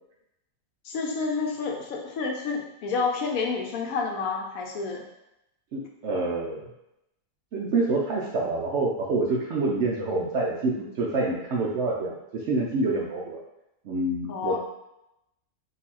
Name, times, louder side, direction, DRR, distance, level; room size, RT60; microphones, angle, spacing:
voice 1, 0.8-5.0 14.3-14.6, left 4 dB, 70° left, 1 dB, 1.0 m, -29 dB
voice 2, 5.7-6.7 7.5-13.4 13.8-14.6, right 2 dB, 65° right, -3 dB, 0.7 m, -27 dB
4.0 x 2.7 x 4.1 m, 0.87 s
omnidirectional pair, 1.7 m